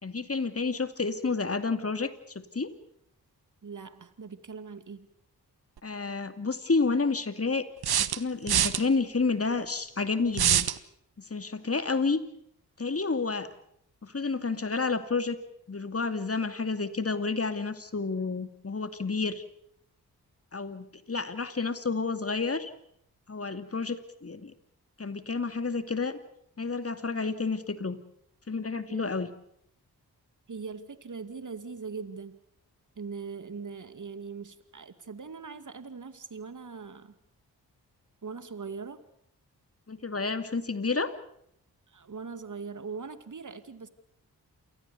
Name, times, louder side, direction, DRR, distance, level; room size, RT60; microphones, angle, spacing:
voice 1, 0.0-2.7 5.8-7.7 8.0-10.7 11.3-12.2 12.8-13.5 14.0-15.4 15.7-19.4 20.5-22.7 23.3-24.5 25.0-26.2 26.6-28.0 28.5-29.3 39.9-41.1, left 4 dB, 35° left, 10 dB, 2.4 m, -30 dB
voice 2, 3.6-5.1 28.9-29.2 30.5-32.4 33.0-37.1 38.2-39.0 41.9-43.9, right 5 dB, 50° right, 12 dB, 2.4 m, -41 dB
sound 1, 5.8-5.9 7.8-8.8 10.3-10.8, right 10 dB, 70° right, 1.2 m, -24 dB
28.0 x 19.0 x 7.0 m, 0.72 s
supercardioid pair, 40°, 39 cm